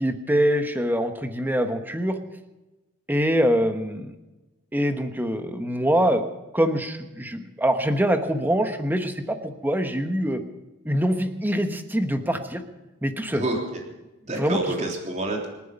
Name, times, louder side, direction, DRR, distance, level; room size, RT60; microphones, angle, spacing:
voice 1, 0.0-2.2 3.1-4.1 4.7-6.2 6.5-10.4 10.8-12.6 13.0-13.4 14.4-14.6, equal, 10° right, 7 dB, 1.2 m, -24 dB
voice 2, 13.3-13.8 14.2-15.5, right 2 dB, 35° right, 0 dB, 3.4 m, -28 dB
26.5 x 9.3 x 5.4 m, 1.1 s
head